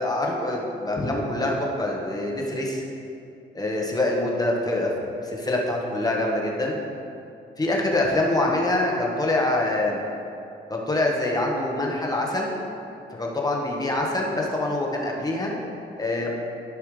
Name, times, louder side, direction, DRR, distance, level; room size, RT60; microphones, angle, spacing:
voice 1, 0.0-2.8 3.5-6.8 7.6-10.0 10.7-12.6 13.1-15.5 16.0-16.3, left 2 dB, 20° left, -1 dB, 1.5 m, -25 dB
14.0 x 5.7 x 3.3 m, 2.7 s
cardioid pair, 90°, 20 cm